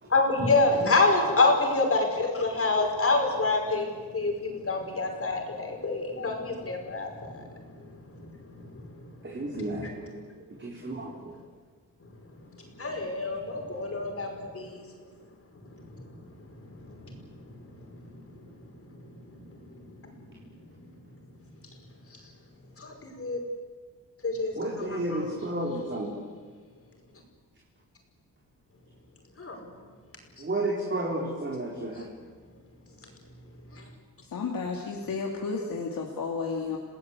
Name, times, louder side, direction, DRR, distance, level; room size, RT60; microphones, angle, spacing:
voice 1, 0.1-7.5 8.2-8.3 8.5-8.9 9.6-9.7 12.8-14.8 15.7-15.8 16.8-17.2 18.0-18.2 19.7-19.8 22.8-23.4 24.2-24.5 25.1-25.2 29.4-29.6 33.7-33.8, left 3 dB, 40° left, 2 dB, 5.4 m, -27 dB
voice 2, 0.8-1.3 9.2-10.1 10.6-11.4 24.5-26.1 30.4-32.1, right 1 dB, 35° right, -3 dB, 4.3 m, -32 dB
voice 3, 34.3-36.8, left 4 dB, 70° left, 0 dB, 2.7 m, -32 dB
29.5 x 18.5 x 8.4 m, 1.5 s
wide cardioid pair, 125°, 35 cm